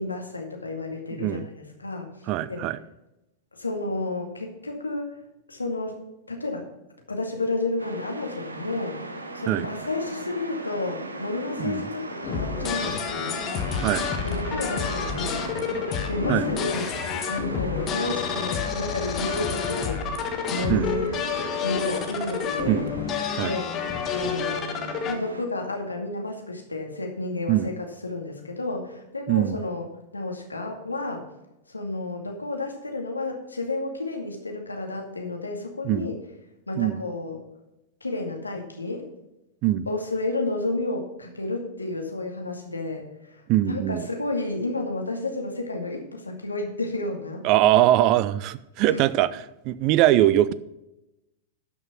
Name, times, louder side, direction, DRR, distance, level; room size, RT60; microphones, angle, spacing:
voice 1, 0.0-2.7 3.5-5.2 5.5-6.0 6.3-6.7 7.1-9.0 9.3-13.4 14.2-21.1 21.6-22.9 23.4-23.7 24.1-31.2 31.7-36.2 36.7-37.4 38.0-39.0 39.9-47.4 48.9-49.0, left 2 dB, 85° left, 2 dB, 2.2 m, -31 dB
voice 2, 1.1-1.5 2.3-2.8 9.5-9.7 11.6-11.8 13.8-14.1 16.3-16.4 20.7-20.9 22.7-22.9 23.4-23.5 27.5-27.7 29.3-29.6 35.8-36.1 36.8-37.0 39.6-39.9 43.5-44.1 47.4-50.5, right 13 dB, 40° right, 17 dB, 0.6 m, -22 dB
sound 1, 7.8-25.4, right 2 dB, 80° right, 1.2 m, -38 dB
sound 2, 12.2-25.1, left 6 dB, 30° left, 1.5 m, -29 dB
12.0 x 6.1 x 5.8 m, 0.92 s
figure-of-eight pair, 95°, 0 cm